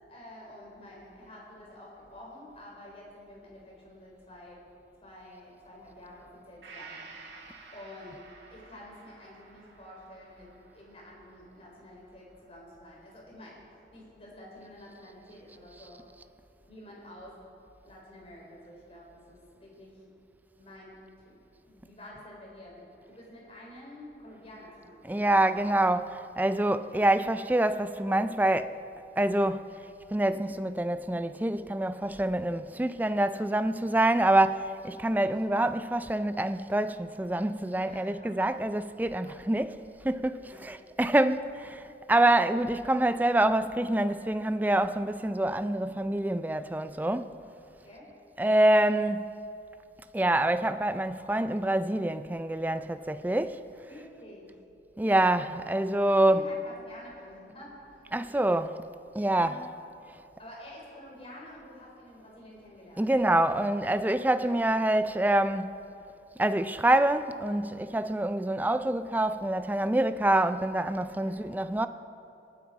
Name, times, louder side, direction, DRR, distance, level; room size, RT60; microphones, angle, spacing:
voice 1, 0.1-4.6 5.0-7.0 7.7-8.2 8.5-13.6 13.9-16.0 16.7-17.4 17.8-20.0 20.5-21.0 21.3-21.4 21.7-25.4 35.3-35.4 37.8-38.3 39.2-39.6 40.5-40.6 47.8-48.1 53.8-54.5 56.3-58.1 59.3-59.7 60.4-63.1 64.4-64.6 71.2-71.4, left 1 dB, 35° left, 4.1 m, -49 dB
Gong, 6.6-14.3 14.6-14.7, right 4 dB, 75° right, 2.2 m, -53 dB
voice 2, 25.0-28.8 29.2-29.7 30.1-39.8 40.0-47.4 48.4-49.3 50.1-53.6 55.0-56.5 58.1-58.8 59.1-59.5 63.0-65.7 66.4-71.9, right 1 dB, 10° right, 0.3 m, -26 dB
26.5 x 9.2 x 4.8 m
head